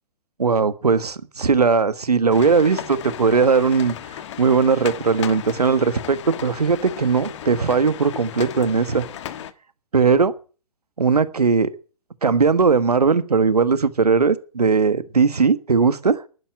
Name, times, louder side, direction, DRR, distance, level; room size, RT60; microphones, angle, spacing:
voice 1, 0.4-3.9 4.4-9.0 9.9-10.3 11.0-11.7 12.2-16.2, right 5 dB, 80° right, 1.4 m, -18 dB
sound 1, 2.3-9.5, left 10 dB, 50° left, 1.4 m, -35 dB
11.5 x 10.5 x 8.7 m
figure-of-eight pair, 125°, 19 cm